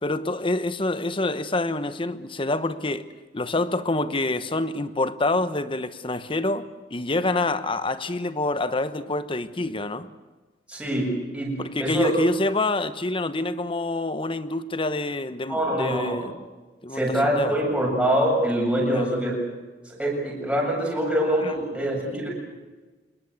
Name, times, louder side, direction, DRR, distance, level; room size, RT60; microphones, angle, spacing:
voice 1, 0.0-3.0 3.3-10.1 11.6-16.3 16.8-17.6 18.9-19.1 21.4-21.5, left 2 dB, 30° left, 1.0 m, -27 dB
voice 2, 10.7-12.1 15.5-16.3 16.9-19.4 19.9-22.3, right 1 dB, 5° right, 7.5 m, -24 dB
26.0 x 21.5 x 8.1 m
head